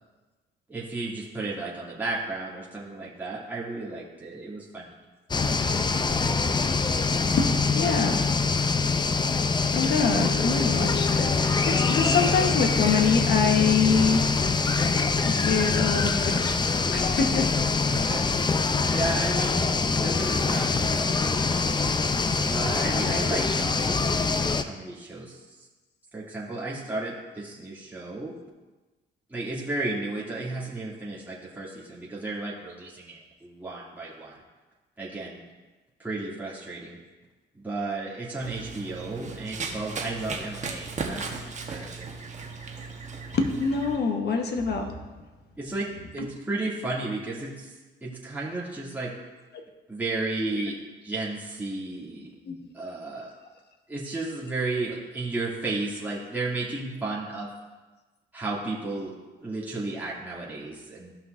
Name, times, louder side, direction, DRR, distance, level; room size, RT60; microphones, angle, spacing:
voice 1, 0.7-4.8 17.9-21.8 22.5-24.3 24.6-25.6 26.1-28.3 29.3-34.3 35.0-35.4 36.0-37.0 37.5-41.4 41.7-42.1 45.6-49.1 49.9-50.8 51.0-52.3 52.7-53.3 53.9-57.5 58.3-61.1, right 2 dB, 10° right, -7 dB, 2.5 m, -33 dB
sound 1, 5.3-24.6, left 4 dB, 20° left, 0.5 m, -24 dB
voice 2, 7.7-8.2 9.7-14.3 15.2-16.5 16.9-17.5 20.7-20.8 43.3-44.9 50.5-50.6 52.5-52.6, left 5 dB, 55° left, 4 dB, 1.2 m, -25 dB
Run, 38.4-44.0, right 4 dB, 35° right, 1.1 m, -36 dB
14.0 x 5.8 x 2.6 m, 1.2 s
cardioid pair, 90°, 20 cm